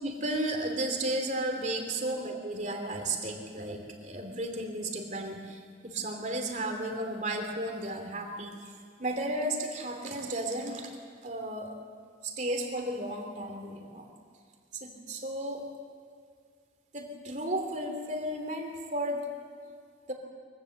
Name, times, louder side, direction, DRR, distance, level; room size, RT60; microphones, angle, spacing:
voice 1, 0.0-8.7 9.0-10.9 11.2-11.7 12.2-14.1 14.7-15.6 16.9-19.2 20.1-20.2, right 1 dB, 45° right, 3 dB, 2.9 m, -34 dB
23.0 x 16.0 x 7.8 m, 2.1 s
head